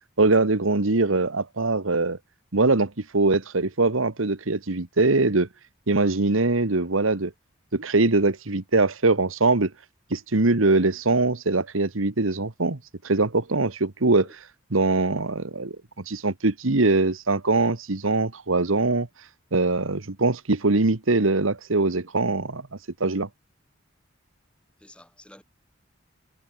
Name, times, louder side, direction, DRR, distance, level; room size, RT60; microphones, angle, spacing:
voice 1, 0.2-2.2 2.5-5.5 5.9-7.3 7.7-9.7 10.1-12.8 13.0-14.3 14.7-15.8 16.1-19.1 19.5-22.6 23.0-23.3, right 3 dB, 90° right, 1.5 m, -22 dB
voice 2, 24.8-25.4, left 1 dB, 5° left, 5.6 m, -51 dB
head